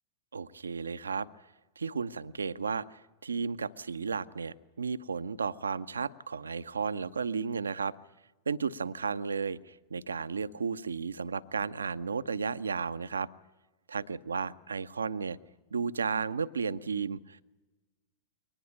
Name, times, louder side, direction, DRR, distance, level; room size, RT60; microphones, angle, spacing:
voice 1, 0.3-1.3 1.8-8.0 8.5-13.3 13.9-15.4 15.7-17.4, right 5 dB, 75° right, 14 dB, 0.7 m, -33 dB
23.0 x 19.5 x 9.0 m, 1.1 s
figure-of-eight pair, 90°, 0 cm